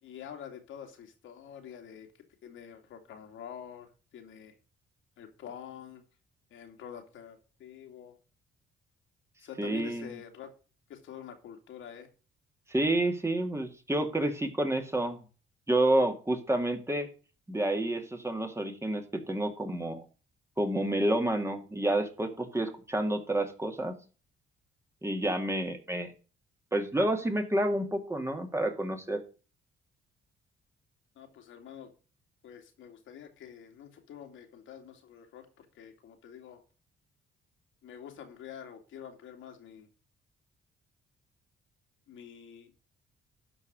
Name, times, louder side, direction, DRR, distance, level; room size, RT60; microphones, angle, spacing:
voice 1, 0.0-2.1 2.4-4.6 5.2-6.0 6.5-8.2 9.4-10.5 10.9-12.1 31.2-31.9 32.4-36.6 37.8-39.9 42.1-42.7, left 9 dB, 80° left, 4 dB, 2.5 m, -47 dB
voice 2, 9.6-10.2 12.7-15.2 15.7-17.1 17.5-20.1 20.6-24.0 25.0-26.1 26.7-29.2, right 1 dB, 15° right, 5 dB, 2.2 m, -29 dB
12.5 x 4.9 x 7.5 m, 0.36 s
cardioid pair, 90°, 20 cm